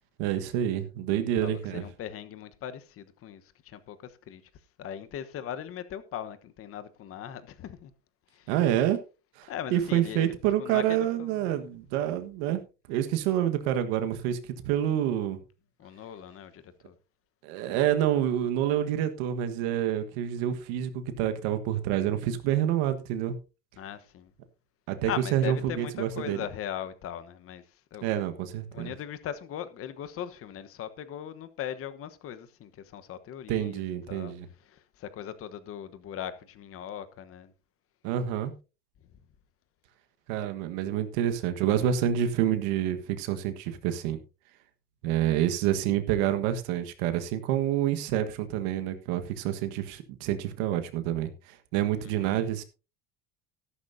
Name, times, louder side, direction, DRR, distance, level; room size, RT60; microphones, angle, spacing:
voice 1, 0.2-1.8 8.5-9.0 9.4-12.6 12.9-14.4 14.6-15.4 17.4-23.4 24.9-26.4 28.0-28.9 33.5-34.5 38.0-38.5 40.3-44.2 45.0-52.6, right 11 dB, 75° right, 1.5 m, -28 dB
voice 2, 1.1-4.4 4.8-7.9 8.3-8.5 9.5-10.3 10.6-11.7 15.8-16.9 23.8-24.3 25.1-27.6 27.9-28.2 28.7-34.3 34.6-37.5 52.0-52.4, left 9 dB, 40° left, 1.2 m, -39 dB
13.0 x 11.5 x 2.7 m
cardioid pair, 130°, 34 cm